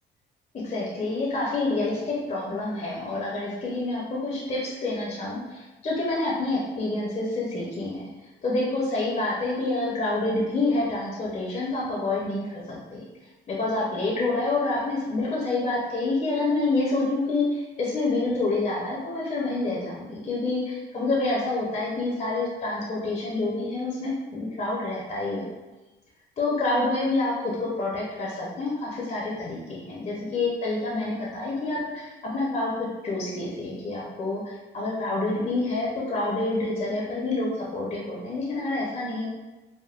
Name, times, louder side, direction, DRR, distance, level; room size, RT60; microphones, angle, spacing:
voice 1, 0.6-8.1 8.4-13.0 13.5-25.5 26.4-32.7 33.0-39.3, left 2 dB, 35° left, -5 dB, 0.7 m, -27 dB
3.5 x 2.1 x 2.4 m, 1.1 s
cardioid pair, 90°, 20 cm